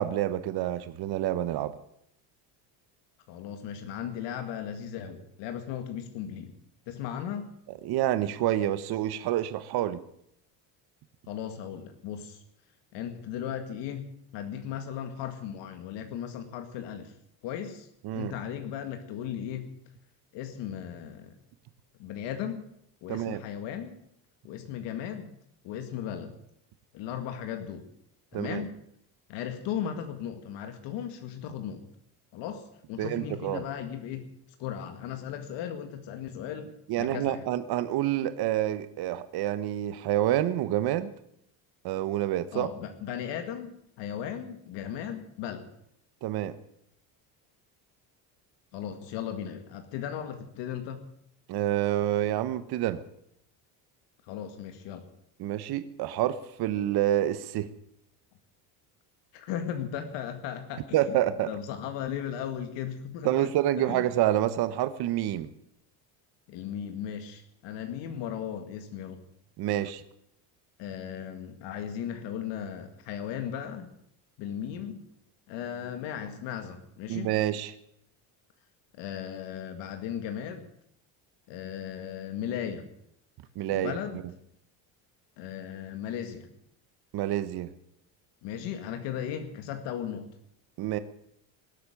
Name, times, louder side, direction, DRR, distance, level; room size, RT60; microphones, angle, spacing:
voice 1, 0.0-1.7 7.8-10.0 18.0-18.3 23.1-23.4 28.3-28.6 33.0-33.6 36.9-41.1 41.8-42.7 46.2-46.6 51.5-53.0 55.4-57.7 60.9-61.5 63.2-65.5 69.6-70.0 77.1-77.7 83.6-84.0 87.1-87.7 90.8-91.0, right 13 dB, 60° right, 12 dB, 1.2 m, -28 dB
voice 2, 3.3-6.5 6.9-7.5 11.3-12.4 12.9-17.1 17.4-17.9 18.1-19.7 20.3-21.3 22.0-22.7 23.0-24.0 24.4-25.4 25.6-26.4 26.9-27.9 28.3-28.8 29.3-31.8 32.3-34.3 34.6-37.5 42.5-45.7 48.7-51.0 54.2-55.0 59.3-61.2 61.5-63.5 63.9-64.0 66.5-69.2 70.8-73.9 74.4-75.0 75.5-77.3 78.9-80.7 81.5-82.9 83.7-84.2 85.4-86.5 88.4-90.3, left 9 dB, 75° left, 7 dB, 2.0 m, -36 dB
19.0 x 8.2 x 9.1 m, 0.74 s
cardioid pair, 110°, 42 cm